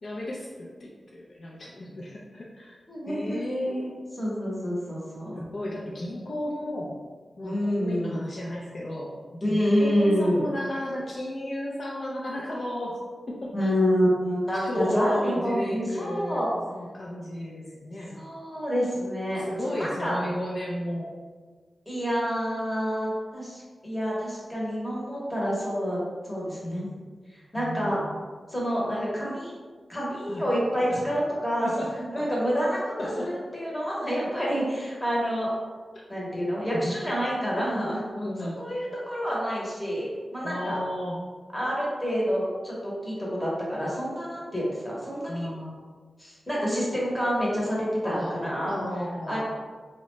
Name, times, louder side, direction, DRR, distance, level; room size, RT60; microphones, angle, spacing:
voice 1, 0.0-2.8 3.1-4.0 5.3-7.0 7.4-12.9 13.3-13.7 14.5-18.2 19.4-21.1 26.5-27.0 27.6-28.1 30.3-30.4 30.9-31.1 31.6-31.9 32.2-32.3 33.0-33.3 36.7-36.9 38.1-38.6 40.4-41.2 45.3-45.7 48.0-48.4 48.7-49.4, left 1 dB, 45° left, -4 dB, 0.4 m, -33 dB
voice 2, 2.9-3.4 3.7-3.8 4.2-5.4 7.4-8.2 9.4-10.5 13.5-16.5 18.1-19.4 19.8-20.2 21.9-26.9 27.5-28.0 28.5-29.5 29.9-31.7 32.0-35.5 36.1-38.0 38.4-40.8 41.5-45.5 46.2-48.7 49.3-49.4, equal, 5° left, -6 dB, 0.9 m, -28 dB
3.7 x 2.1 x 3.0 m, 1.5 s
wide cardioid pair, 160°, 0 cm